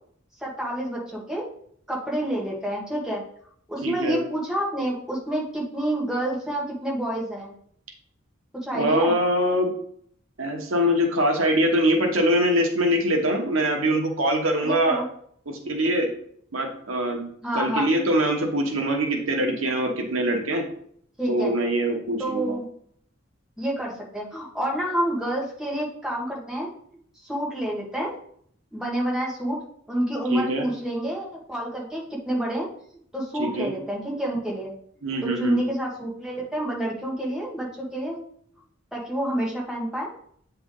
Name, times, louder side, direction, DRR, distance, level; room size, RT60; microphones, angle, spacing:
voice 1, 0.4-1.5 1.9-3.2 3.7-7.5 8.6-9.1 14.6-15.1 17.4-17.9 21.2-21.5 22.2-22.6 23.6-26.7 27.2-28.1 28.7-29.6 29.9-32.7 33.1-34.7 35.2-38.2 38.9-40.1, right 1 dB, ahead, -4 dB, 1.4 m, -28 dB
voice 2, 3.8-4.2 8.7-9.7 10.4-15.0 15.5-16.1 16.5-17.3 17.5-20.6 21.3-22.6 30.3-30.6 33.4-33.7 35.0-35.6, equal, 80° right, 3 dB, 1.0 m, -23 dB
8.2 x 3.3 x 3.7 m, 0.63 s
head